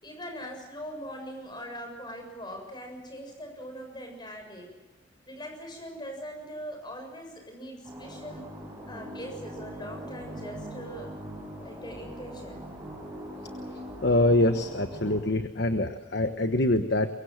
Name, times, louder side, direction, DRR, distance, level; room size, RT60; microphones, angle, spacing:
voice 1, 0.0-4.7 5.2-8.5 8.9-11.1 11.6-12.6, equal, 25° left, 3 dB, 7.1 m, -41 dB
sound 1, 7.8-15.2, equal, 15° right, 7.2 m, -41 dB
voice 2, 14.0-17.1, left 1 dB, 55° left, 7 dB, 1.2 m, -24 dB
23.5 x 23.0 x 7.5 m, 1.1 s
head